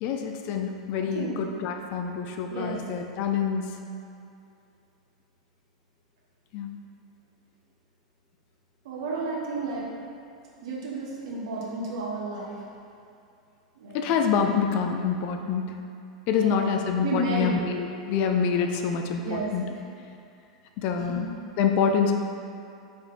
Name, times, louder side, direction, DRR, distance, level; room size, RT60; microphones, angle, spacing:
voice 1, 0.0-3.8 6.5-6.7 13.9-15.8 16.3-19.6 20.8-21.2 21.6-22.1, left 6 dB, 45° left, 4 dB, 0.5 m, -26 dB
voice 2, 0.9-1.3 2.5-2.8 8.8-9.9 10.6-12.6 13.7-14.0 16.3-16.6 17.0-17.6 19.2-19.7 21.0-21.3, right 3 dB, 60° right, -4 dB, 1.3 m, -32 dB
5.6 x 4.2 x 4.3 m, 2.5 s
figure-of-eight pair, 90°, 3 cm